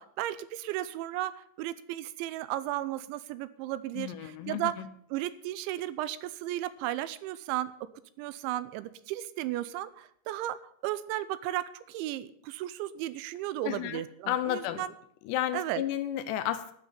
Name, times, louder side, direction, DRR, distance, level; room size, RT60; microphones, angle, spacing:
voice 1, 0.0-4.7 5.1-7.7 8.2-10.6 10.8-14.9 15.5-15.8, right 14 dB, 85° right, 15 dB, 3.1 m, -34 dB
voice 2, 3.9-4.9 13.6-14.8 15.2-16.7, left 12 dB, 80° left, 12 dB, 2.7 m, -32 dB
12.0 x 6.4 x 9.5 m, 0.67 s
omnidirectional pair, 5.2 m